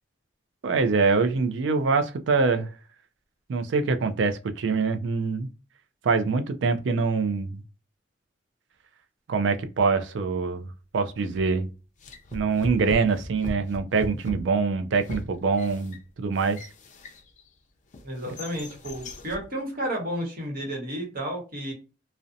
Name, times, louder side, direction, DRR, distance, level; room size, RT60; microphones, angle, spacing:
voice 1, 0.6-2.7 3.5-5.5 6.0-7.6 9.3-11.7 12.3-16.6 18.3-18.4, right 4 dB, 75° right, 0.4 m, -24 dB
sound 1, 11.3-11.6 12.0-17.5 17.9-19.5, left 1 dB, 40° left, 0.4 m, -39 dB
voice 2, 18.0-21.7, equal, 55° right, 1.0 m, -32 dB
2.6 x 2.1 x 2.5 m
head